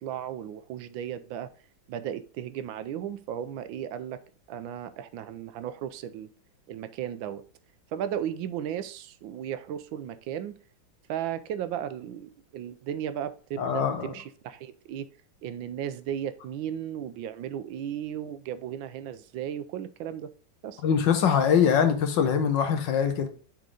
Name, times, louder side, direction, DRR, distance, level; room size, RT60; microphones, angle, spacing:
voice 1, 0.0-1.5 1.9-4.2 4.5-6.3 6.7-7.4 7.9-10.6 11.1-15.1 15.4-20.3 20.6-20.8, right 10 dB, 85° right, 1.4 m, -35 dB
voice 2, 13.6-14.1 20.8-23.3, left 7 dB, 70° left, 1.6 m, -23 dB
6.5 x 3.9 x 4.8 m
omnidirectional pair, 2.1 m